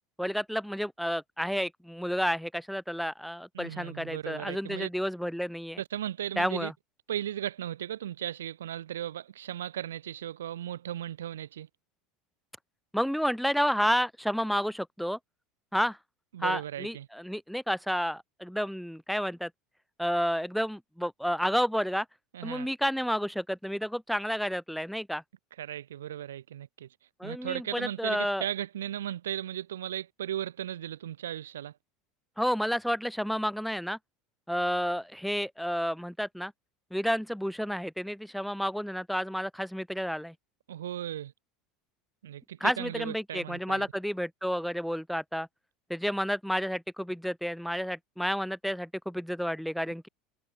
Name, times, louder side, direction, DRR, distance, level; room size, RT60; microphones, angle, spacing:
voice 1, 0.2-5.8 6.4-6.7 12.9-15.2 15.7-16.0 16.4-19.5 20.0-22.1 22.4-25.2 27.2-28.4 32.4-34.0 34.5-36.5 36.9-40.3 42.6-45.5 45.9-50.1, equal, ahead, 0.6 m, -30 dB
voice 2, 3.5-4.9 5.8-6.7 7.1-11.7 16.3-17.1 22.3-22.7 25.6-26.9 27.2-31.7 40.7-41.3 42.2-43.9, right 11 dB, 70° right, 3.5 m, -36 dB
figure-of-eight pair, 75°, 0 cm